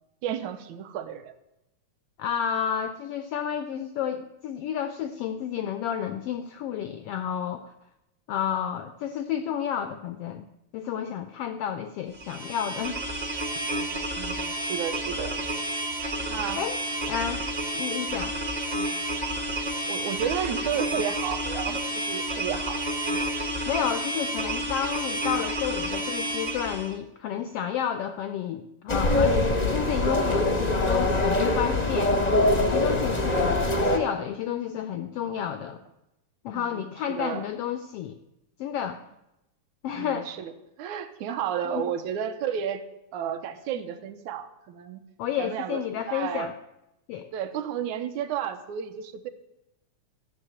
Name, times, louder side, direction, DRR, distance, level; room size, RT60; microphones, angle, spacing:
voice 1, 0.2-1.3 14.2-15.4 16.3-16.7 19.9-22.8 36.5-37.5 40.0-40.5 40.8-42.8 43.1-45.0 45.4-46.5 47.3-49.3, right 9 dB, 75° right, 9 dB, 2.2 m, -32 dB
voice 2, 2.2-7.7 8.3-10.5 10.7-13.0 16.6-16.8 17.1-17.4 17.7-18.3 23.6-32.1 32.6-35.8 36.4-38.2 38.6-39.0 39.8-40.4 41.6-41.8 45.2-46.5 47.1-47.3, left 9 dB, 85° left, 9 dB, 1.3 m, -31 dB
sound 1, 12.1-26.9, right 1 dB, 50° right, 0.5 m, -30 dB
sound 2, 28.9-34.0, left 2 dB, 70° left, 0.4 m, -23 dB
13.0 x 6.7 x 8.7 m, 0.90 s
omnidirectional pair, 3.4 m